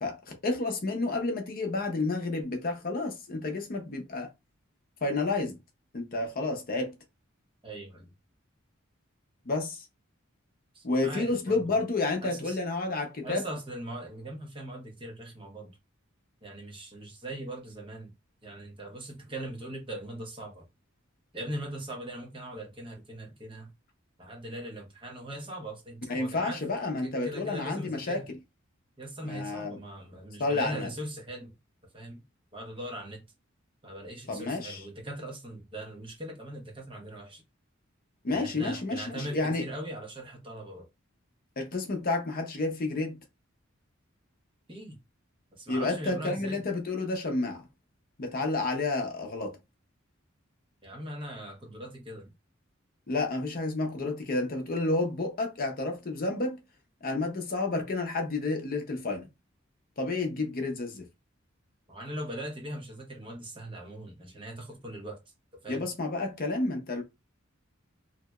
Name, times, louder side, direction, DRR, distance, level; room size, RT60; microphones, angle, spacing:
voice 1, 0.0-4.3 5.0-5.6 5.9-6.9 9.5-9.8 10.8-13.4 26.1-28.4 29.2-29.8 30.4-30.9 34.3-34.8 38.2-39.6 41.6-43.2 45.7-47.6 48.2-49.6 53.1-56.6 57.0-59.3 60.0-61.1 65.7-67.0, left 2 dB, 45° left, 0.6 m, -30 dB
voice 2, 7.6-8.1 10.7-11.8 12.2-12.6 13.2-15.8 16.4-18.1 18.4-20.6 21.3-23.7 24.2-26.6 27.0-28.3 29.0-31.5 31.9-32.2 32.5-33.2 33.8-37.4 38.3-40.9 44.7-45.0 45.5-46.6 50.8-52.3 61.9-65.2 65.6-65.9, right 1 dB, 25° right, 0.9 m, -40 dB
3.2 x 2.7 x 2.3 m
head